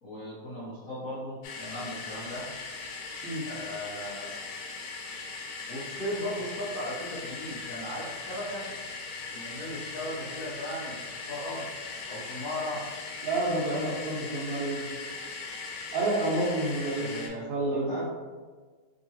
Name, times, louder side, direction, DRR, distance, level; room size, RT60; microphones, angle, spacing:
voice 1, 0.0-2.5 3.4-4.3 5.7-8.7 9.3-11.0 11.3-11.7 12.1-12.9 17.0-18.1, left 1 dB, 60° left, -9 dB, 0.9 m, -37 dB
sound 1, 1.4-17.3, left 4 dB, 90° left, 1.6 m, -39 dB
voice 2, 13.2-14.8 15.9-17.1 17.5-18.1, right 2 dB, 70° right, -4 dB, 1.4 m, -29 dB
3.7 x 2.9 x 2.8 m, 1.5 s
omnidirectional pair, 2.3 m